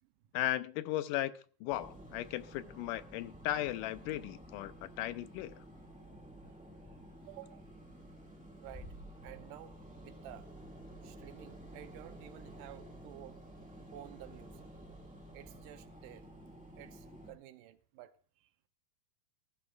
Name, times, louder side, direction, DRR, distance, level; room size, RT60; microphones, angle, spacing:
voice 1, 0.3-1.3 1.6-5.5, left 13 dB, 85° left, 2.2 m, -36 dB
sound 1, 1.7-17.3, right 1 dB, 5° right, 1.0 m, -52 dB
voice 2, 7.3-7.7 8.6-9.0 9.2-10.5 11.0-13.4 13.9-14.7 15.3-16.3 16.8-18.7, right 13 dB, 85° right, 2.3 m, -52 dB
15.0 x 14.5 x 2.4 m
omnidirectional pair, 3.7 m